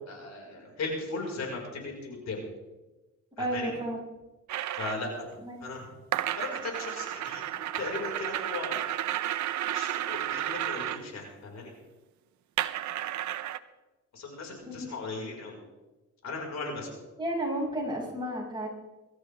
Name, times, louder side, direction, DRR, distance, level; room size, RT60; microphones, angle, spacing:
voice 1, 0.0-2.4 3.4-3.7 4.7-5.3 5.6-5.9 6.1-8.9 9.6-11.7 14.1-15.6 16.2-16.9, left 3 dB, 60° left, 0 dB, 5.3 m, -37 dB
voice 2, 3.4-4.0 5.4-5.5 14.7-14.9 17.2-18.7, right 1 dB, 15° right, -3 dB, 6.5 m, -32 dB
sound 1, 4.5-5.0 6.1-11.0 12.6-13.6, right 12 dB, 70° right, 0.8 m, -32 dB
23.0 x 13.5 x 3.6 m, 1.1 s
cardioid pair, 90°, 30 cm